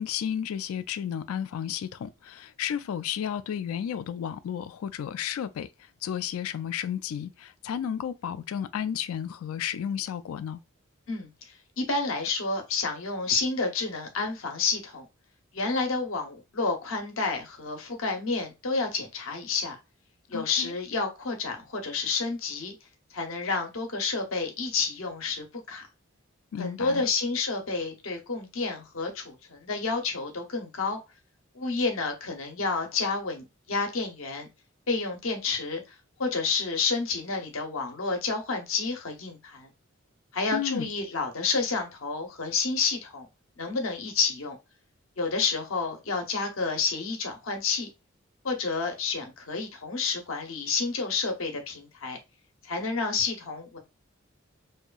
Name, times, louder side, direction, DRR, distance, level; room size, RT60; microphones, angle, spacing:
voice 1, 0.0-10.6 20.3-20.7 26.5-27.0 40.5-40.9, left 9 dB, 90° left, 0.3 m, -33 dB
voice 2, 11.8-15.1 15.5-19.8 20.3-22.7 23.1-25.8 26.6-31.0 31.5-34.5 34.9-35.8 36.2-39.7 40.3-43.3 43.6-44.6 45.2-47.9 48.4-52.2 52.6-53.8, left 4 dB, 75° left, 0.8 m, -30 dB
2.8 x 2.3 x 2.4 m
head